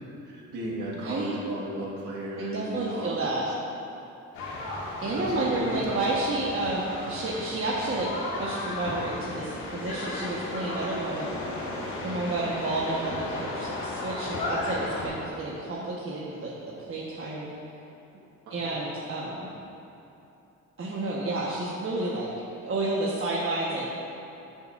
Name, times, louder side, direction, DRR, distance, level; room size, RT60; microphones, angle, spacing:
voice 1, 0.3-3.1 5.1-6.2 18.5-18.7, right 1 dB, 85° right, -5 dB, 1.8 m, -35 dB
voice 2, 1.0-1.4 2.4-3.4 5.0-11.4 12.0-16.5 16.9-17.5 18.5-19.5 20.8-22.3 22.6-23.8, right 2 dB, 45° right, -6 dB, 1.3 m, -30 dB
sound 1, 4.3-15.1, left 2 dB, 80° left, 1.9 m, -35 dB
14.0 x 7.1 x 2.6 m, 2.8 s
cardioid pair, 90°, 30 cm